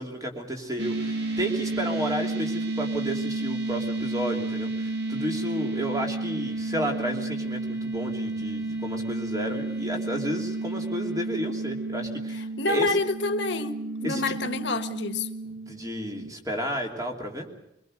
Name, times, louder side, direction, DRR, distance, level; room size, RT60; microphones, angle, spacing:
voice 1, 0.0-12.9 14.0-14.3 15.7-17.5, equal, 20° right, 3.0 m, -32 dB
sound 1, 0.8-16.3, right 2 dB, 60° right, 2.1 m, -31 dB
voice 2, 12.6-15.3, left 2 dB, 65° left, 1.5 m, -27 dB
23.5 x 22.0 x 6.5 m
head